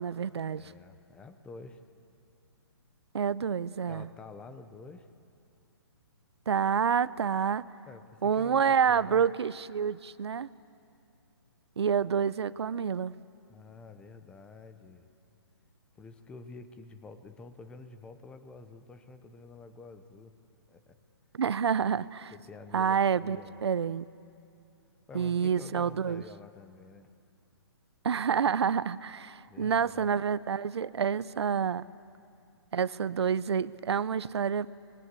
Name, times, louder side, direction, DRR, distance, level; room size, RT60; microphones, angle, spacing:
voice 1, 0.0-0.7 3.1-4.1 6.5-7.7 8.2-10.5 11.8-13.1 21.3-22.3 22.7-24.1 25.1-26.2 28.0-31.8 32.7-34.7, right 7 dB, 75° right, 0.7 m, -28 dB
voice 2, 0.5-1.8 3.9-5.1 7.9-9.2 13.5-15.1 16.0-20.3 20.7-21.0 22.3-23.6 25.1-27.1 29.5-30.1, left 4 dB, 5° left, 0.7 m, -49 dB
27.5 x 22.0 x 8.3 m
hypercardioid pair, 165°, 14 cm